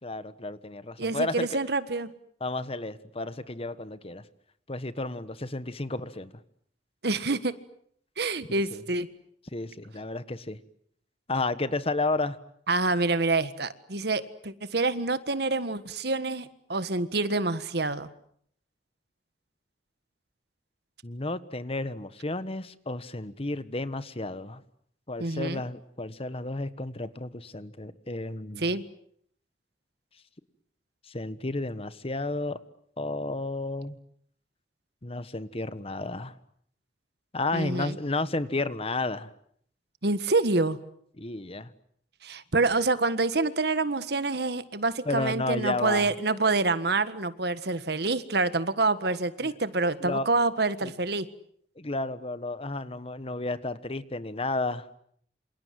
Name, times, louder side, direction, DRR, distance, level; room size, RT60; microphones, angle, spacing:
voice 1, 0.0-1.5 2.4-4.2 4.7-6.3 8.5-8.8 9.5-10.6 11.3-12.4 21.0-24.6 25.1-28.7 31.1-32.6 33.0-34.0 35.0-36.3 37.3-39.3 41.2-41.7 45.0-46.1 49.4-49.5 50.0-50.3 50.8-50.9 51.8-54.8, left 2 dB, 35° left, 14 dB, 1.4 m, -32 dB
voice 2, 1.0-2.1 7.0-7.5 8.2-9.1 12.7-18.1 25.2-25.6 28.6-28.8 37.5-38.0 40.0-40.8 42.2-51.2, right 3 dB, 65° right, 13 dB, 1.6 m, -27 dB
28.0 x 27.5 x 7.7 m, 0.66 s
head